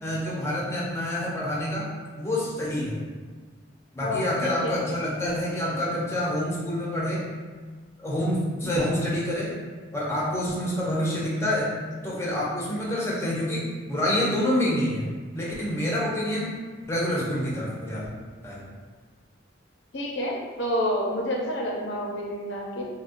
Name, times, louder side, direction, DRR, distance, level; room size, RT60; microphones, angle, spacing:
voice 1, 0.0-1.9 2.2-3.0 3.9-7.2 8.0-9.5 9.9-11.7 12.0-15.1 15.3-16.6 16.9-18.1 18.4-18.6, left 1 dB, 15° left, -5 dB, 0.5 m, -27 dB
voice 2, 4.0-4.8 19.9-22.8, left 1 dB, 75° left, -1 dB, 0.6 m, -29 dB
3.6 x 2.1 x 2.5 m, 1.4 s
head